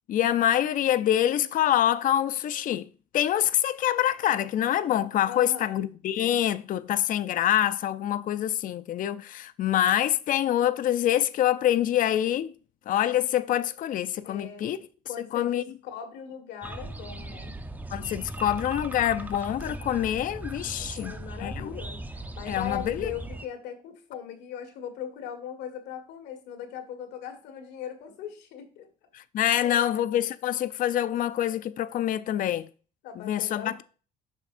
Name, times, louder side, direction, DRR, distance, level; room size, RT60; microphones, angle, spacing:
voice 1, 0.1-2.9 3.1-12.5 12.9-14.8 15.3-15.6 17.9-21.1 21.4-21.8 22.5-23.1 29.1-32.7 33.2-33.8, left 11 dB, 55° left, 0.5 m, -26 dB
voice 2, 5.2-5.9 14.2-14.7 15.1-17.6 20.7-28.9 29.4-30.0 33.0-33.8, left 9 dB, 90° left, 1.7 m, -39 dB
sound 1, 16.6-23.5, right 2 dB, 10° right, 0.7 m, -38 dB
8.5 x 6.5 x 2.6 m
cardioid pair, 110°, 17 cm